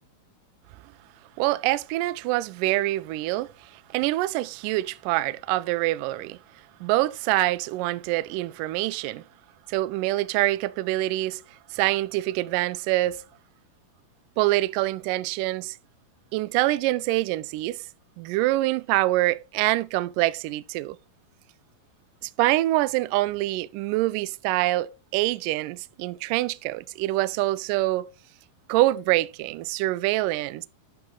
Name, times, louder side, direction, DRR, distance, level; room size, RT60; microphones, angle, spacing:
voice 1, 1.4-6.4 6.8-9.2 9.7-11.4 11.7-13.2 14.4-15.8 16.3-17.8 18.2-21.0 22.2-28.1 28.7-30.7, right 17 dB, 85° right, 1.9 m, -25 dB
11.5 x 5.5 x 3.7 m
omnidirectional pair, 4.3 m